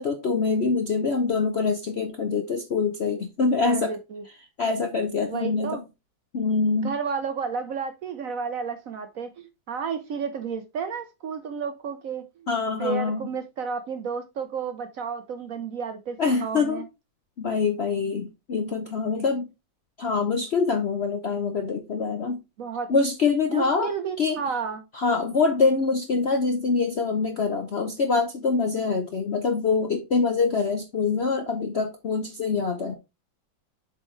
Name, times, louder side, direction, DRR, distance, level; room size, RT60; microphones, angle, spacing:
voice 1, 0.0-3.9 4.6-5.8 6.3-6.9 12.5-13.2 16.2-16.8 17.4-19.5 20.0-22.4 22.9-23.9 24.2-24.4 24.9-32.9, left 4 dB, 70° left, 0.6 m, -25 dB
voice 2, 3.6-4.2 5.3-5.8 6.8-12.2 12.8-16.8 22.6-22.9 23.5-24.8, right 6 dB, 65° right, 0.8 m, -32 dB
7.6 x 4.4 x 3.1 m
omnidirectional pair, 2.1 m